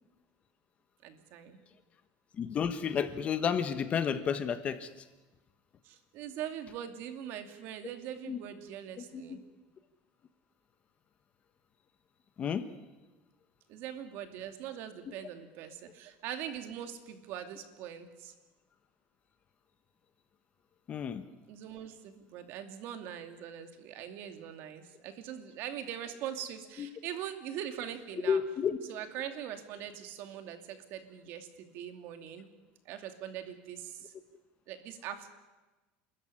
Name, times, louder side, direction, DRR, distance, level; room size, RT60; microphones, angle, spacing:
voice 1, 1.0-1.6 5.8-9.4 13.7-18.3 21.5-28.4 28.9-32.5 32.8-34.1 34.7-35.3, right 10 dB, 55° right, 7 dB, 2.7 m, -42 dB
voice 2, 2.4-4.9 8.3-8.4 9.1-9.2 12.4-12.6 20.9-21.2 26.8-26.9 28.2-28.8, left 7 dB, 30° left, 10 dB, 1.4 m, -31 dB
29.0 x 14.0 x 9.9 m, 1.2 s
cardioid pair, 150°, 4 cm